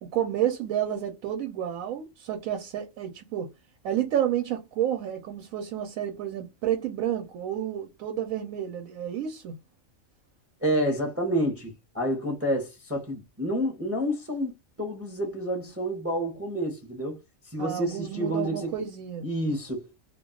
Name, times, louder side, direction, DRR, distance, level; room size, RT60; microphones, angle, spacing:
voice 1, 0.0-3.5 3.8-9.5 17.6-19.3, right 10 dB, 90° right, 1.0 m, -30 dB
voice 2, 10.6-17.2 17.5-18.7 19.2-20.0, equal, 15° right, 0.5 m, -29 dB
2.4 x 2.2 x 3.6 m
omnidirectional pair, 1.4 m